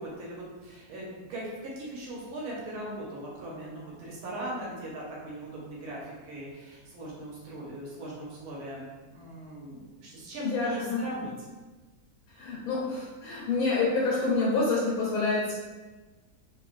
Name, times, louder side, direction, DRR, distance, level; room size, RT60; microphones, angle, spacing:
voice 1, 0.0-11.3, right 1 dB, 90° right, -4 dB, 1.2 m, -39 dB
voice 2, 10.4-11.0 12.4-15.6, left 3 dB, 80° left, -5 dB, 1.0 m, -27 dB
3.1 x 2.5 x 2.4 m, 1.3 s
omnidirectional pair, 1.6 m